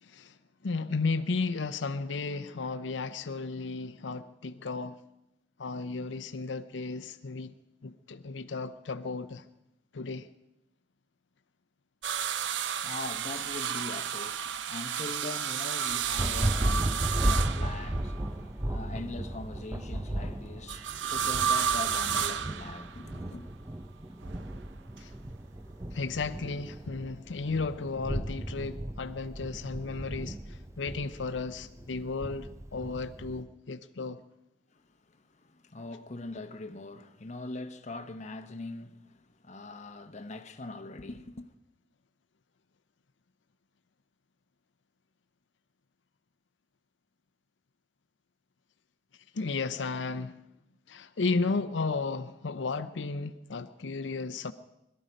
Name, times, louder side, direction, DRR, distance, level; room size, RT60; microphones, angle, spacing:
voice 1, 0.0-0.4 0.6-5.0 5.6-7.6 7.8-9.4 9.9-10.3 25.0-25.1 25.9-34.2 49.3-50.4 50.9-54.5, left 4 dB, 85° left, 0.7 m, -34 dB
sound 1, 12.0-18.3 20.7-23.2 24.2-25.0 26.4-26.5, right 8 dB, 80° right, 0.6 m, -32 dB
voice 2, 12.4-23.5 35.1-41.5, left 2 dB, 40° left, 1.0 m, -42 dB
Thunder, 15.9-33.4, right 1 dB, 15° right, 0.6 m, -35 dB
21.5 x 13.0 x 5.2 m
head